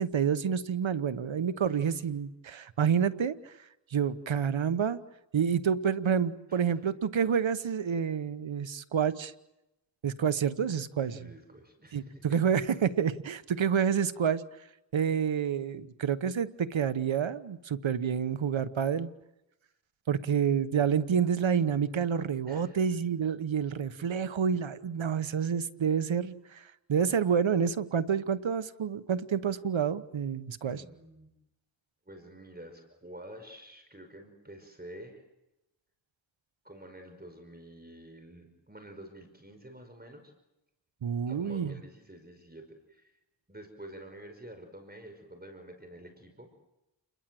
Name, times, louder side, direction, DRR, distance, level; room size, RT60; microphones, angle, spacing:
voice 1, 0.0-3.5 3.9-5.0 5.3-9.3 10.0-11.3 11.9-14.4 14.9-19.1 20.1-30.8 41.0-41.7, right 7 dB, 90° right, 13 dB, 1.1 m, -28 dB
voice 2, 1.3-1.8 6.5-6.8 11.0-12.4 22.5-22.8 30.6-31.3 32.1-35.2 36.6-40.3 41.2-43.1 43.5-46.5, right 1 dB, 20° right, 5 dB, 5.3 m, -49 dB
29.5 x 21.5 x 7.7 m, 0.92 s
wide cardioid pair, 55°, 45 cm